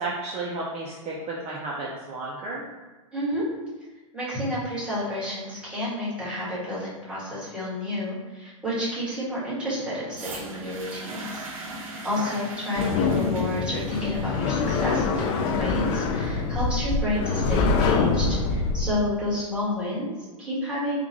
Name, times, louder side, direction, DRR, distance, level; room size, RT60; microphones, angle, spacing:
voice 1, 0.0-2.6 12.2-12.4, right 2 dB, 35° right, -4 dB, 0.6 m, -32 dB
voice 2, 3.1-3.5 4.1-11.4 11.8-21.0, left 1 dB, 5° right, -10 dB, 1.5 m, -30 dB
sound 1, 10.1-18.1 18.9-19.0, right 2 dB, 75° right, 0.8 m, -41 dB
sound 2, 12.8-18.9, left 4 dB, 45° left, 0.4 m, -25 dB
3.7 x 2.4 x 3.0 m, 1.2 s
hypercardioid pair, 120°, 18 cm